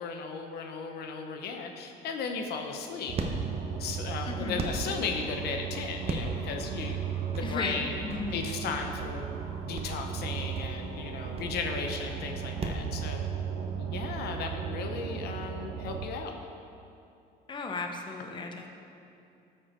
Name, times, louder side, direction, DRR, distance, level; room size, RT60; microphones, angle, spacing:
voice 1, 0.0-3.2 3.8-8.0 8.3-9.2 9.6-13.2 13.8-16.3, left 5 dB, 70° left, 4 dB, 0.8 m, -36 dB
sound 1, 2.0-12.9, right 3 dB, 35° right, 0.9 m, -39 dB
sound 2, 3.1-16.1, right 7 dB, 70° right, 0.7 m, -36 dB
voice 2, 4.2-4.7 7.4-8.5 17.5-18.7, left 4 dB, 30° left, 3 dB, 0.8 m, -35 dB
13.0 x 4.5 x 4.4 m, 2.7 s
cardioid pair, 110°, 17 cm